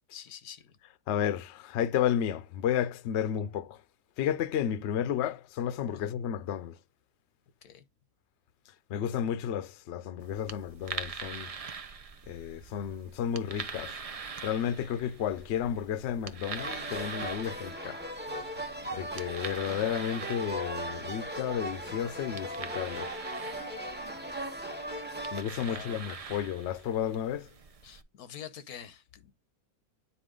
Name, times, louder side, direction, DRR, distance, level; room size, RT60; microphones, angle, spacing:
voice 1, 0.1-0.8 5.9-6.1 7.6-7.8 25.6-26.1 27.8-29.3, left 9 dB, 85° left, 1.4 m, -46 dB
voice 2, 1.1-3.8 4.2-6.8 8.9-11.5 12.3-13.9 14.4-18.0 18.9-23.1 25.3-27.5, left 9 dB, 60° left, 0.8 m, -32 dB
sound 1, 10.2-28.0, right 5 dB, 75° right, 0.3 m, -44 dB
sound 2, 16.6-25.4, right 1 dB, 10° right, 0.7 m, -38 dB
9.2 x 4.3 x 3.7 m
omnidirectional pair, 1.6 m